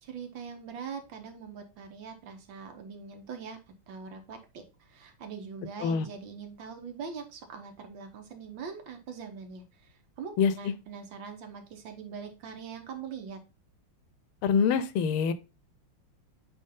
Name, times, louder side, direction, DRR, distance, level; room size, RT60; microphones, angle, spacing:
voice 1, 0.0-3.6 3.9-13.4, right 6 dB, 70° right, 1.8 m, -42 dB
voice 2, 14.4-15.3, left 6 dB, 85° left, 1.5 m, -24 dB
8.5 x 3.3 x 3.7 m
omnidirectional pair, 2.3 m